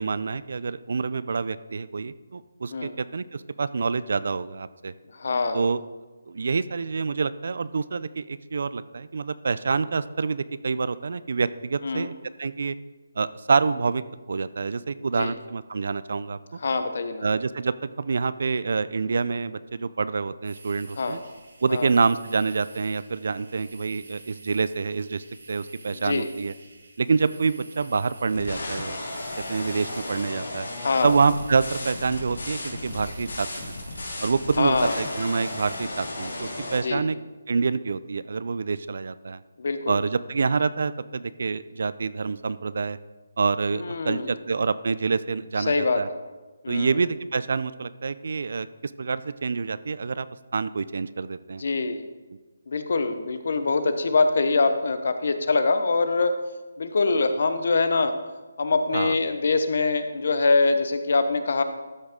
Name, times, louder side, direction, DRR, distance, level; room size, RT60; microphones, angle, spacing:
voice 1, 0.0-4.9 5.5-5.8 6.3-12.1 12.4-12.7 13.2-14.0 14.3-16.4 17.2-21.2 21.6-26.5 27.0-29.0 29.4-30.7 31.0-33.7 34.2-37.2 37.5-39.4 39.9-43.0 43.4-46.1 46.7-48.7 49.0-50.3 50.5-51.6 58.9-59.2, right 4 dB, 60° right, 16 dB, 0.4 m, -27 dB
voice 2, 5.1-5.6 11.8-12.1 15.1-15.3 16.6-17.2 21.0-21.2 21.7-21.9 25.9-26.3 30.8-31.1 34.6-35.0 36.8-37.0 39.6-40.0 43.7-44.4 45.6-46.0 46.6-47.0 51.6-52.0 52.7-56.3 56.8-58.2 58.6-61.6, left 3 dB, 55° left, 9 dB, 0.8 m, -24 dB
Ambiance of lake, 20.4-35.9, right 2 dB, 75° right, 2.5 m, -50 dB
sound 1, 28.3-36.8, left 2 dB, 80° left, 2.7 m, -35 dB
13.0 x 6.4 x 3.6 m, 1.2 s
hypercardioid pair, 165°, 0 cm